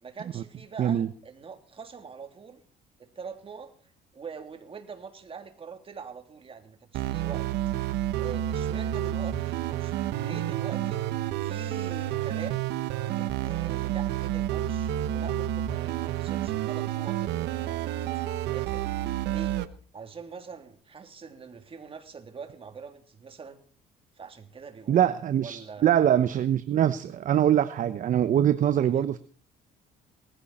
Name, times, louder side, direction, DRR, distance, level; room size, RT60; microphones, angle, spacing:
voice 1, 0.0-2.6 3.0-7.5 7.8-11.0 11.4-12.7 13.2-18.8 19.3-19.6 19.9-23.6 24.2-25.1 25.4-25.9 28.8-28.9, right 5 dB, 35° right, 6 dB, 3.3 m, -44 dB
sound 1, 6.9-19.7, right 12 dB, 85° right, 1.3 m, -30 dB
voice 2, 24.9-29.2, right 10 dB, 50° right, 12 dB, 0.9 m, -23 dB
19.5 x 15.5 x 4.3 m, 0.42 s
cardioid pair, 110°, 17 cm